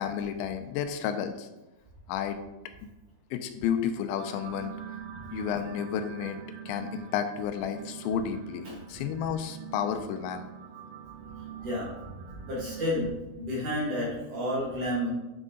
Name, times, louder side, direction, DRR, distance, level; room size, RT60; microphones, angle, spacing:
voice 1, 0.0-1.5 2.1-2.4 2.8-2.9 3.3-4.7 5.3-6.4 6.7-10.5, left 8 dB, 85° left, 8 dB, 3.0 m, -31 dB
sound 1, 4.1-12.9, right 9 dB, 85° right, 2.0 m, -44 dB
voice 2, 11.6-11.9 12.5-15.1, left 1 dB, 50° right, -5 dB, 3.1 m, -30 dB
9.3 x 6.2 x 3.8 m, 1.0 s
omnidirectional pair, 5.2 m